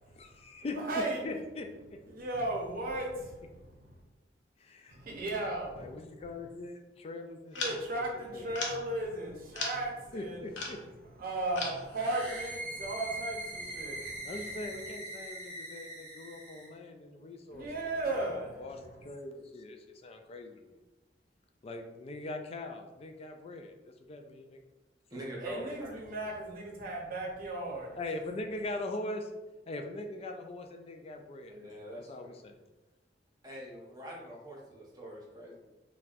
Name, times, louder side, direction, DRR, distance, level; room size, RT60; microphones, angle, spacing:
voice 1, 0.2-0.8 1.2-2.0 4.6-5.0 5.8-7.8 8.3-8.5 10.1-10.8 14.2-18.3 18.6-20.7 21.6-23.7 24.0-24.6 28.0-29.3 29.7-32.5, left 2 dB, 35° left, 4 dB, 0.3 m, -41 dB
voice 2, 0.9-1.2 2.1-3.9 4.9-5.9 7.5-10.4 11.2-14.3 17.5-18.6 25.4-28.0, right 2 dB, 55° right, 0 dB, 0.7 m, -36 dB
sound 1, 7.5-7.9 8.5-8.9 9.5-9.9 10.6-10.8 11.6-11.9, left 3 dB, 80° left, 0.6 m, -36 dB
sound 2, 11.9-16.7, right 1 dB, 10° left, 1.1 m, -42 dB
voice 3, 25.1-25.9 26.1-26.5 31.5-32.3 33.4-35.5, equal, 20° right, -4 dB, 0.8 m, -45 dB
4.0 x 2.2 x 2.4 m, 1.1 s
head